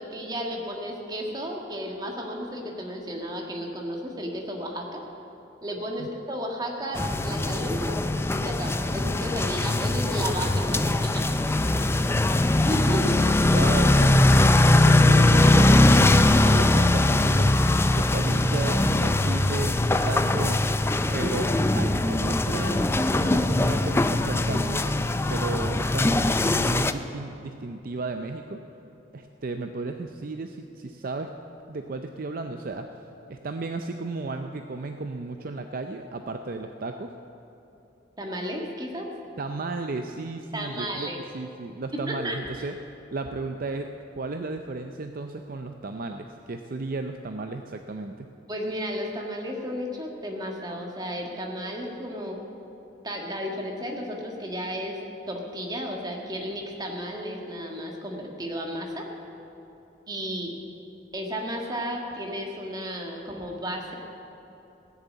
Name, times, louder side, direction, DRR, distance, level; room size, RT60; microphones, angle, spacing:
voice 1, 0.0-5.0 5.6-8.0 8.3-11.3 11.6-12.2 12.6-13.2 21.0-21.3 38.2-39.1 40.5-41.2 42.1-42.6 48.5-52.4 53.0-55.0 55.3-59.1 60.1-60.5 61.1-63.9, equal, 20° right, 1 dB, 1.7 m, -33 dB
sound 1, 7.0-26.9, left 2 dB, 15° left, 0.4 m, -21 dB
voice 2, 13.4-17.5 17.9-20.6 21.1-25.0 25.3-28.6 29.1-31.3 31.7-32.9 33.3-37.1 39.4-42.7 43.1-48.3, right 3 dB, 50° right, 6 dB, 0.5 m, -34 dB
18.0 x 6.8 x 8.4 m, 2.9 s
head